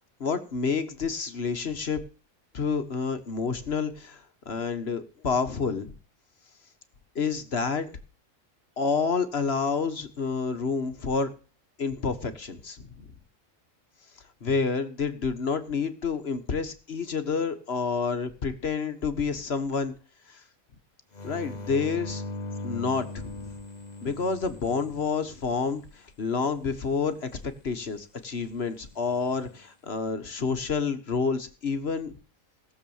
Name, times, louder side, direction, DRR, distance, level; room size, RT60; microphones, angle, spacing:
voice 1, 0.2-2.0 2.5-5.9 7.2-8.0 8.8-11.3 11.8-13.1 14.4-19.9 20.3-20.4 21.2-22.2 22.6-23.5 24.0-32.1, left 5 dB, 50° left, 10 dB, 1.6 m, -29 dB
sound 1, 21.1-25.8 29.0-29.6, left 2 dB, 30° left, 1.4 m, -39 dB
18.0 x 7.4 x 7.2 m, 0.35 s
omnidirectional pair, 1.4 m